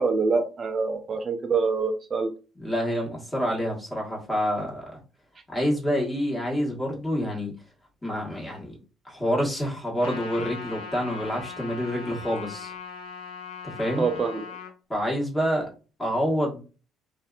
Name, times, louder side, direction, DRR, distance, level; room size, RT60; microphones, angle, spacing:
voice 1, 0.0-2.3 14.0-14.6, right 4 dB, 40° right, 6 dB, 0.3 m, -25 dB
voice 2, 2.6-4.9 5.5-7.5 8.0-8.8 9.0-12.7 13.6-14.2 14.9-15.7 16.0-16.6, equal, 15° left, -2 dB, 1.2 m, -27 dB
Trumpet, 10.0-14.7, left 5 dB, 90° left, 0.5 m, -39 dB
2.5 x 2.4 x 2.3 m, 0.35 s
supercardioid pair, 80°, 0 cm